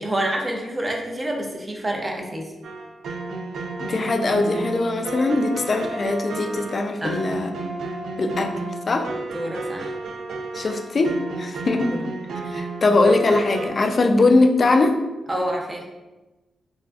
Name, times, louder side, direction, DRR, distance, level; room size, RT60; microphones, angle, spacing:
voice 1, 0.0-2.5 7.0-7.2 9.3-9.9 11.9-12.0 12.4-12.6 15.3-15.9, right 1 dB, 20° right, 1 dB, 0.4 m, -28 dB
sound 1, 2.6-13.7, right 3 dB, 80° right, 0.3 m, -32 dB
voice 2, 3.8-7.5 8.2-8.5 8.9-9.1 10.5-12.0 12.5-15.0, left 2 dB, 45° left, 5 dB, 0.3 m, -21 dB
3.3 x 2.5 x 2.3 m, 1.1 s
cardioid pair, 95°, 0 cm